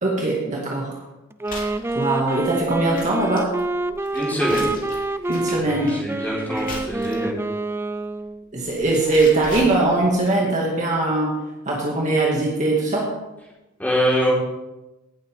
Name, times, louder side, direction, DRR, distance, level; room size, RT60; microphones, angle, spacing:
voice 1, 0.0-1.0 1.9-3.5 5.3-6.0 8.5-11.3 11.7-13.1, right 2 dB, 35° right, -3 dB, 2.0 m, -21 dB
Wind instrument woodwind instrument, 1.3-8.5, right 2 dB, 10° right, 0.4 m, -27 dB
sound 1, 1.4-7.4 8.5-10.3, left 2 dB, 40° left, 3.0 m, -38 dB
voice 2, 4.1-4.7 5.5-7.4 13.8-14.3, equal, 10° left, -6 dB, 4.0 m, -24 dB
17.5 x 8.4 x 3.6 m, 1.0 s
head